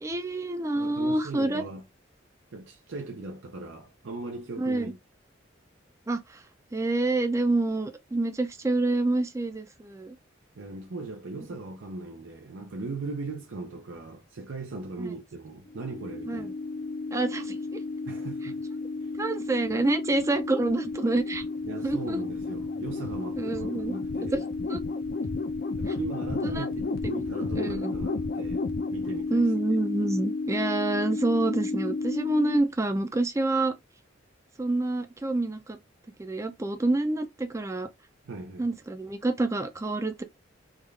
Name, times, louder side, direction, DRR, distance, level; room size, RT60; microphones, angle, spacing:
voice 1, 0.0-1.6 4.6-4.9 6.1-6.4 6.7-10.2 15.0-15.1 16.3-16.5 17.1-17.8 19.2-21.4 21.8-22.2 23.4-24.0 24.3-24.4 24.7-24.8 25.9-26.0 26.4-26.7 27.6-27.9 29.3-33.8 34.6-35.8 36.2-37.9 38.6-40.2, right 2 dB, 15° right, 0.4 m, -27 dB
voice 2, 0.7-1.8 2.5-5.0 10.5-16.5 18.1-18.6 19.0-19.1 21.6-24.4 25.8-28.7 28.9-29.5 38.2-38.7, right 3 dB, 85° right, 0.6 m, -38 dB
sound 1, 15.7-32.6, left 3 dB, 50° left, 0.5 m, -32 dB
3.6 x 2.3 x 3.2 m
head